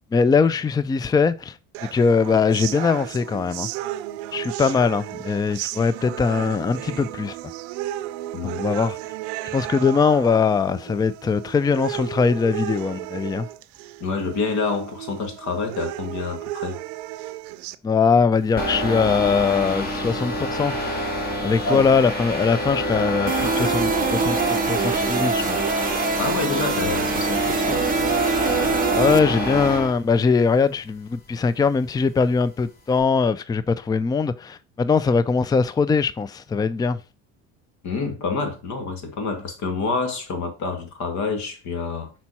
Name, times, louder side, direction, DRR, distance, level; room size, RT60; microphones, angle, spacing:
voice 1, 0.1-1.6 1.9-3.7 4.3-7.4 8.6-9.0 9.5-13.5 17.8-20.7 21.4-25.6 29.0-37.0, left 5 dB, 15° left, 0.4 m, -21 dB
sound 1, 1.7-17.8, right 15 dB, 90° right, 0.6 m, -34 dB
voice 2, 14.0-16.8 21.6-21.9 26.2-27.9 37.8-42.1, left 4 dB, 60° left, 2.1 m, -27 dB
sound 2, 18.6-29.9, equal, 30° left, 2.1 m, -26 dB
sound 3, 23.3-29.2, right 6 dB, 25° right, 0.7 m, -25 dB
5.8 x 4.4 x 4.2 m
supercardioid pair, 100°, 32 cm